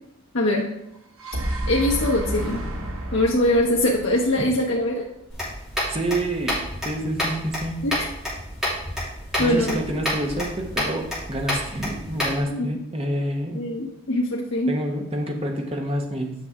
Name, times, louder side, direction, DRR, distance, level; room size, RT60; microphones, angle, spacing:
voice 1, 0.3-0.7 1.7-2.6 3.1-5.1 7.8-8.1 9.0-9.1 9.4-9.8 12.5-12.8 13.5-14.8, left 1 dB, 65° left, -2 dB, 0.9 m, -22 dB
sound 1, 1.0-5.1, right 1 dB, 85° right, 1.3 m, -31 dB
sound 2, 5.3-12.4, left 1 dB, ahead, 2.7 m, -29 dB
voice 2, 5.9-7.9 9.4-13.7 14.7-16.3, right 1 dB, 30° right, 2 dB, 1.0 m, -28 dB
8.5 x 5.8 x 3.6 m, 0.88 s
head